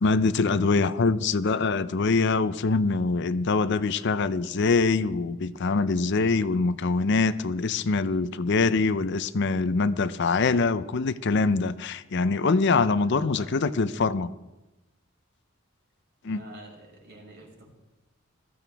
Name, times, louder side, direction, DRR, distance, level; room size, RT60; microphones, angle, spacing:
voice 1, 0.0-14.3 16.2-16.4, left 4 dB, 60° left, 0.5 m, -24 dB
voice 2, 0.6-0.9 12.8-14.1 16.3-17.7, right 1 dB, 60° right, 5.5 m, -48 dB
21.0 x 14.5 x 3.5 m
head